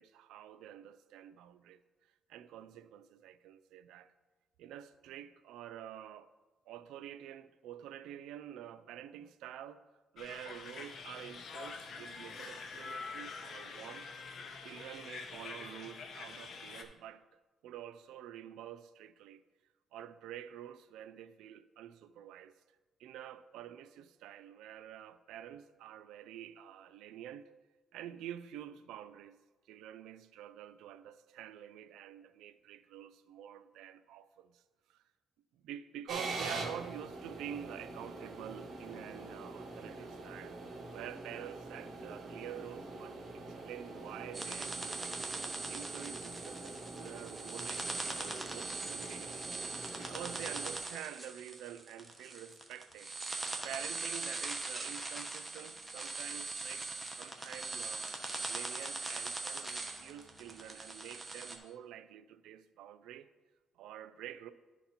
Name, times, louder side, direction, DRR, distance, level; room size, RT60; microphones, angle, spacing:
voice 1, 0.0-1.8 2.3-4.1 4.6-6.3 6.7-9.8 10.1-14.1 14.6-19.4 19.9-22.5 23.0-27.5 27.9-29.4 29.7-34.6 34.9-35.0 35.5-45.1 45.7-49.5 50.0-53.1 53.6-56.9 57.2-58.2 58.5-63.3 63.8-64.5, right 10 dB, 90° right, 0.3 m, -48 dB
sound 1, 10.2-16.8, left 4 dB, 60° left, 0.8 m, -46 dB
sound 2, 36.1-50.8, right 2 dB, 50° right, 1.5 m, -45 dB
sound 3, 44.3-61.6, right 3 dB, 15° right, 1.1 m, -41 dB
11.5 x 4.1 x 4.3 m
cardioid pair, 90°, 0 cm